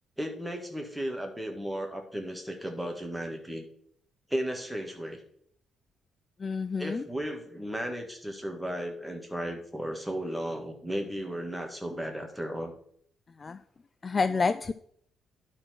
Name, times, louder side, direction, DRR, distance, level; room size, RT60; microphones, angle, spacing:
voice 1, 0.2-3.7 4.3-5.2 6.8-12.7, equal, 5° right, 3 dB, 1.8 m, -35 dB
voice 2, 6.4-7.1 13.4-13.6 14.0-14.7, left 4 dB, 35° left, 13 dB, 0.3 m, -28 dB
11.5 x 4.4 x 4.4 m, 0.66 s
cardioid pair, 90°, 0 cm